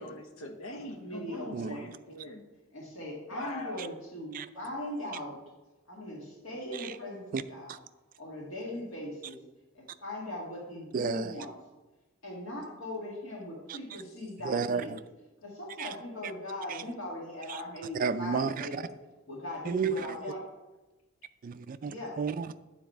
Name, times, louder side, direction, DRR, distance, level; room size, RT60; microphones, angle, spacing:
voice 1, 0.0-2.5 3.3-3.8, left 1 dB, 85° left, 1.0 m, -42 dB
voice 2, 1.0-1.9 2.7-5.4 5.9-7.8 8.2-9.4 9.7-11.5 12.2-15.0 15.4-18.9 19.3-20.4 21.9-22.1, left 1 dB, 70° left, 2.0 m, -39 dB
voice 3, 1.5-1.9 4.3-4.5 6.8-6.9 7.3-7.4 10.9-11.3 13.7-13.8 14.5-15.0 15.8-15.9 17.5-17.6 18.0-18.7 19.7-20.1 21.4-22.5, right 5 dB, 40° right, 0.3 m, -32 dB
9.4 x 4.1 x 4.4 m
head